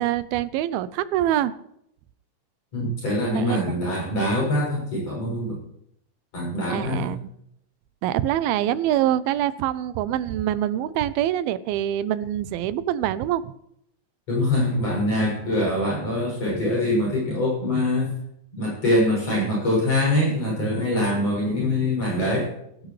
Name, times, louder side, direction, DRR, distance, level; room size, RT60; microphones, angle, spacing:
voice 1, 0.0-1.5 3.3-3.8 6.7-7.3 8.0-13.5, right 12 dB, 85° right, 15 dB, 2.6 m, -25 dB
voice 2, 2.7-5.6 6.3-7.1 14.3-18.1 18.5-22.5, left 1 dB, 45° left, -5 dB, 7.8 m, -24 dB
17.0 x 16.5 x 3.3 m, 0.76 s
omnidirectional pair, 4.3 m